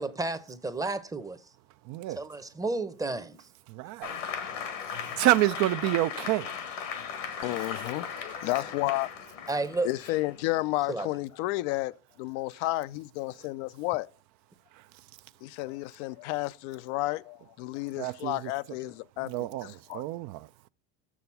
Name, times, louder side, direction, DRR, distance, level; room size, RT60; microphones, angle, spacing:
voice 1, 0.0-1.4 2.2-3.4 7.5-7.6 9.5-9.9 10.9-11.1, right 2 dB, 10° right, 0.7 m, -32 dB
voice 2, 1.9-2.2 3.7-4.1 5.2-6.5 7.6-7.7 18.0-18.5 19.2-20.5, right 16 dB, 50° right, 0.4 m, -28 dB
Applause, 4.0-11.2, left 7 dB, 90° left, 1.8 m, -38 dB
voice 3, 7.4-9.1 9.8-14.1 15.4-20.0, left 18 dB, 70° left, 0.5 m, -32 dB
6.8 x 6.2 x 5.5 m
supercardioid pair, 95°, 37 cm